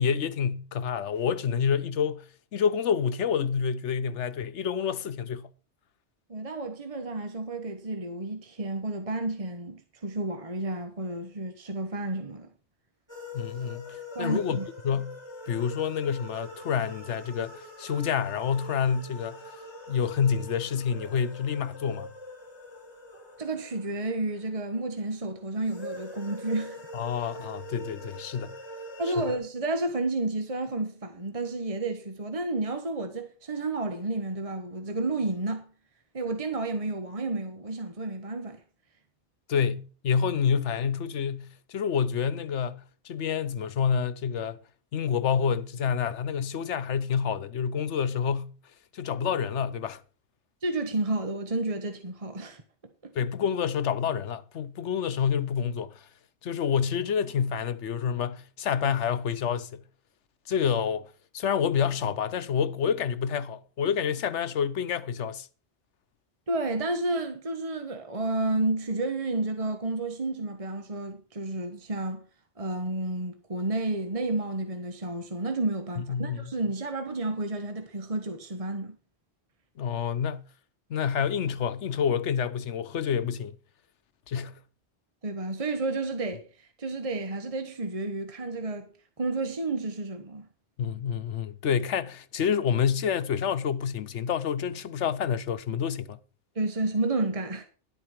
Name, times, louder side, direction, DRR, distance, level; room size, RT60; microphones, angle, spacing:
voice 1, 0.0-2.3 2.5-5.5 13.3-15.2 15.5-19.5 19.9-22.1 26.9-28.6 29.2-29.3 39.5-44.6 44.9-48.6 48.9-50.0 53.1-56.1 56.4-59.8 60.5-65.5 76.0-76.4 79.8-80.5 80.9-83.5 84.3-84.5 90.8-96.2, left 7 dB, 90° left, 1.2 m, -28 dB
voice 2, 6.3-12.5 14.1-14.7 23.4-26.9 29.0-35.7 36.1-38.6 50.6-52.6 53.0-53.1 66.5-72.2 72.6-79.0 85.2-86.5 86.8-88.9 89.2-90.5 96.5-97.6, right 2 dB, 30° right, 1.3 m, -31 dB
sound 1, 13.1-24.8 25.6-29.4, left 1 dB, 20° left, 4.0 m, -43 dB
11.5 x 8.1 x 5.9 m
omnidirectional pair, 1.2 m